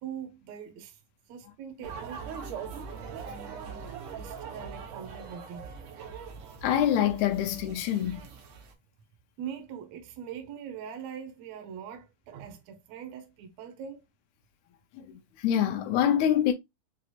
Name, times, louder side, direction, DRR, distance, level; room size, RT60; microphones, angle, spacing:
voice 1, 0.0-1.0 1.3-2.3 3.1-5.7 9.4-14.0, right 8 dB, 70° right, 1.8 m, -42 dB
sound 1, 1.8-8.7, right 6 dB, 85° right, 2.6 m, -41 dB
voice 2, 6.6-8.2 14.9-16.5, left 10 dB, 80° left, 1.8 m, -25 dB
6.2 x 2.4 x 2.7 m
omnidirectional pair, 3.6 m